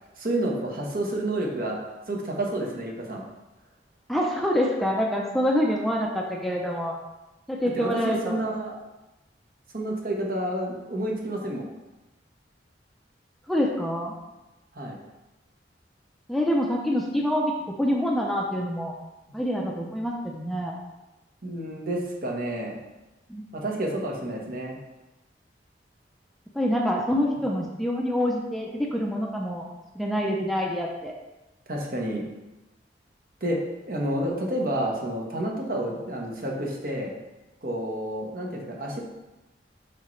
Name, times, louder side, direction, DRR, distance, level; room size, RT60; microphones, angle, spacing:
voice 1, 0.2-3.2 7.7-8.8 9.7-11.7 14.7-15.0 21.4-22.8 23.5-24.8 31.7-32.3 33.4-33.6 33.8-37.1 37.6-39.0, right 1 dB, 55° right, -1 dB, 1.2 m, -29 dB
voice 2, 4.1-7.0 7.5-8.4 13.5-14.1 16.3-17.5 17.8-18.9 19.3-20.8 23.3-23.5 26.5-29.7 29.9-31.1, equal, ahead, -1 dB, 0.6 m, -26 dB
6.7 x 5.8 x 3.2 m, 1.0 s
head